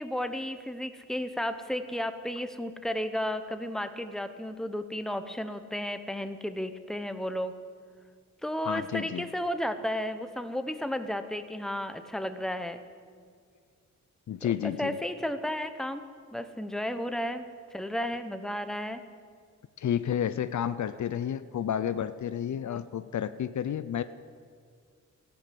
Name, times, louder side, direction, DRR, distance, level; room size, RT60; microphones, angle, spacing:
voice 1, 0.0-7.6 8.4-12.8 14.4-16.0 16.3-17.4 17.7-19.0 22.7-22.8, equal, ahead, 9 dB, 1.1 m, -33 dB
voice 2, 8.6-9.3 14.3-15.0 19.8-24.0, left 9 dB, 65° left, 14 dB, 0.6 m, -31 dB
14.5 x 12.0 x 7.8 m, 2.1 s
cardioid pair, 65°, 31 cm